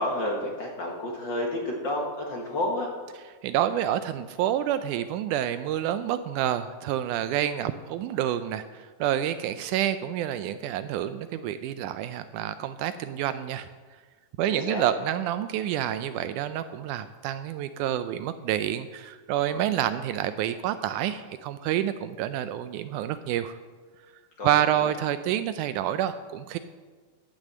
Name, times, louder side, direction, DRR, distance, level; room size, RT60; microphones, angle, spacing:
voice 1, 0.0-2.9 14.5-14.8 24.4-24.9, left 1 dB, 45° left, 0 dB, 1.7 m, -30 dB
voice 2, 3.4-13.7 14.4-23.6 24.4-26.6, right 11 dB, 80° right, 12 dB, 1.9 m, -28 dB
14.0 x 6.3 x 7.5 m, 1.5 s
omnidirectional pair, 3.8 m